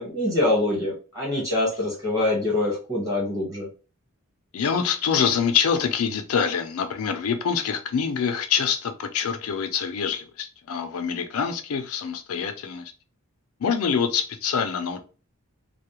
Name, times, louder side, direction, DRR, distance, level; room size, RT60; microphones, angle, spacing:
voice 1, 0.0-3.7, left 2 dB, 15° right, 1.2 m, -24 dB
voice 2, 4.5-12.9 13.6-15.0, left 6 dB, 85° left, 0.4 m, -25 dB
2.3 x 2.0 x 2.9 m
head